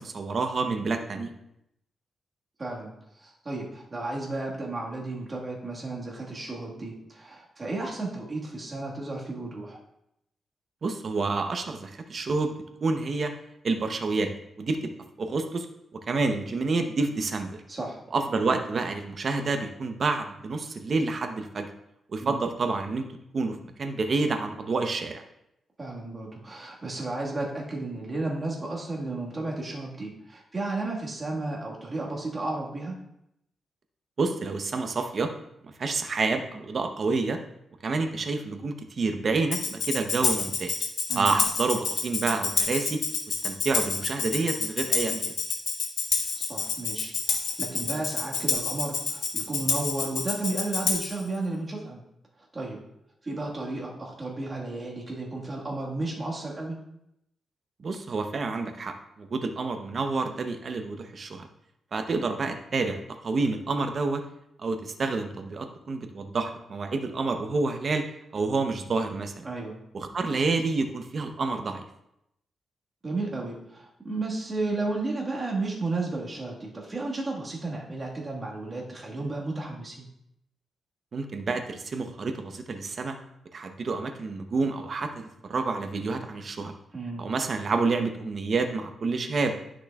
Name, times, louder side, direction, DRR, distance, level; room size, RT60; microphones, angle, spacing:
voice 1, 0.0-1.3 10.8-13.3 13.6-14.3 14.6-14.9 15.2-15.7 15.9-17.6 18.1-21.7 22.1-23.0 23.3-25.2 34.2-35.3 35.6-37.4 37.8-40.7 41.1-43.0 43.3-45.3 57.8-61.5 61.9-64.2 64.6-68.1 68.3-69.5 69.9-71.8 81.1-83.2 83.5-86.7 87.2-89.5, right 3 dB, 45° right, 6 dB, 0.7 m, -28 dB
voice 2, 2.6-2.9 3.2-9.8 17.7-18.0 22.2-22.4 25.8-33.0 41.1-41.4 46.4-52.0 52.5-52.8 53.2-56.8 69.4-69.7 73.0-80.1 86.9-87.3, right 2 dB, 25° right, -2 dB, 1.6 m, -33 dB
Tambourine, 39.5-51.2, left 5 dB, 65° left, 0.9 m, -28 dB
10.5 x 6.1 x 2.3 m, 0.80 s
wide cardioid pair, 135°, 0 cm